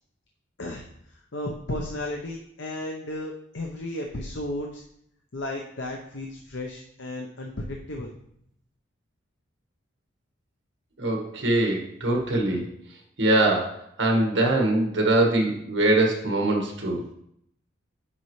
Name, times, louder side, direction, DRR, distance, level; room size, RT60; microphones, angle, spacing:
voice 1, 0.6-4.8 5.3-8.1, left 1 dB, 65° left, 1 dB, 0.8 m, -34 dB
voice 2, 11.0-12.7 13.2-17.0, right 2 dB, 65° right, 1 dB, 1.5 m, -23 dB
9.8 x 5.3 x 3.2 m, 0.74 s
head